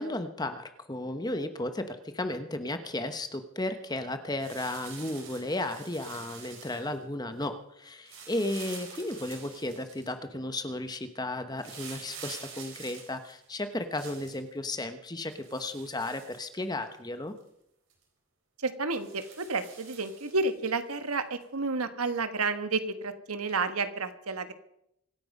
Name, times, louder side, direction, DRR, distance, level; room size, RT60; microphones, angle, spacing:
voice 1, 0.0-17.3, left 1 dB, 20° left, 9 dB, 1.1 m, -34 dB
sound 1, 4.4-7.0 8.1-10.1 11.6-14.4 15.3-16.9 17.4-17.5 17.9-18.0 18.9-20.5 21.4-21.5, right 6 dB, 60° right, 4.3 m, -47 dB
voice 2, 18.6-24.5, right 3 dB, 85° right, 10 dB, 1.4 m, -31 dB
25.0 x 8.8 x 5.4 m, 0.77 s
head